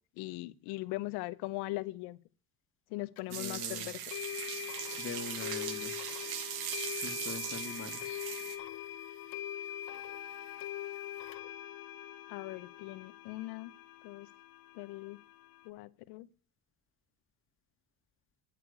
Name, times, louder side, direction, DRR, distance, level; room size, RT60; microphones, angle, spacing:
voice 1, 0.2-2.2 2.9-4.0 12.3-13.7 14.0-14.3 14.7-15.2 15.6-16.3, left 20 dB, 85° left, 0.9 m, -40 dB
sound 1, 3.2-3.3 4.1-15.7, left 12 dB, 65° left, 1.0 m, -43 dB
voice 2, 3.3-3.9 5.0-6.0 7.0-8.2, left 5 dB, 35° left, 2.0 m, -43 dB
sound 2, 3.3-8.6, right 9 dB, 75° right, 1.7 m, -40 dB
9.9 x 6.8 x 6.8 m
cardioid pair, 110°, 38 cm